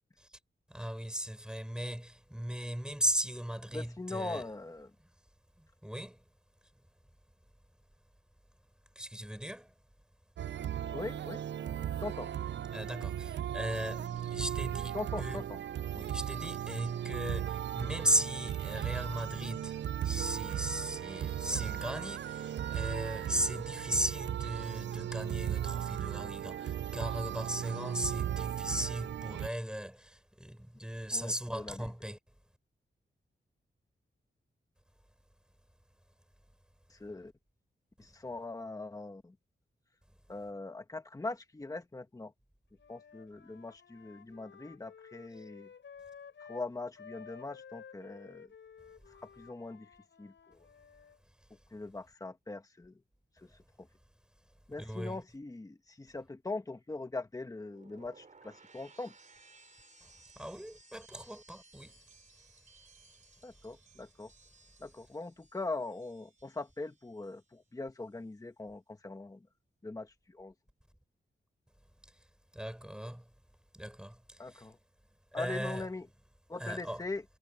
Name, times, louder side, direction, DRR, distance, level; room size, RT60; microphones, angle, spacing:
voice 1, 0.7-4.4 5.6-6.2 8.9-9.7 10.7-10.8 12.7-15.4 15.9-32.2 45.4-45.5 54.8-55.2 60.0-62.0 72.0-72.1 72.5-73.3 73.7-74.7 75.3-75.9 76.6-77.0, equal, 5° right, 4.3 m, -37 dB
voice 2, 3.7-4.9 10.9-11.4 12.0-12.3 14.9-15.6 31.1-31.9 36.9-37.3 38.0-39.3 40.3-42.3 42.9-45.7 46.5-48.5 49.4-49.9 50.2-50.7 51.7-52.9 53.4-53.5 53.8-53.9 54.7-59.1 63.4-64.3 64.8-69.4 69.8-70.5 74.4-74.8 75.3-76.1 76.5-77.2, left 3 dB, 20° left, 1.5 m, -41 dB
sound 1, 10.4-29.5, right 10 dB, 70° right, 0.4 m, -36 dB
Wind instrument woodwind instrument, 42.7-46.7 47.0-51.2, left 7 dB, 75° left, 5.9 m, -54 dB
sound 2, 57.5-67.6 67.9-68.4, right 3 dB, 40° right, 4.5 m, -61 dB
wide cardioid pair, 160°, 19 cm